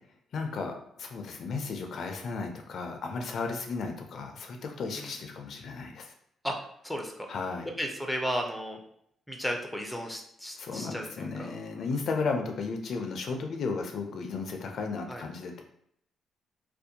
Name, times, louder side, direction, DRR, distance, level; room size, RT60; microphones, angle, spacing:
voice 1, 0.3-6.1 7.3-7.7 10.6-15.6, left 4 dB, 60° left, 4 dB, 0.4 m, -34 dB
voice 2, 6.8-7.3 7.8-8.8 9.3-11.5 15.1-15.2, equal, ahead, 2 dB, 0.5 m, -34 dB
2.5 x 2.1 x 2.7 m, 0.70 s
cardioid pair, 90°, 0 cm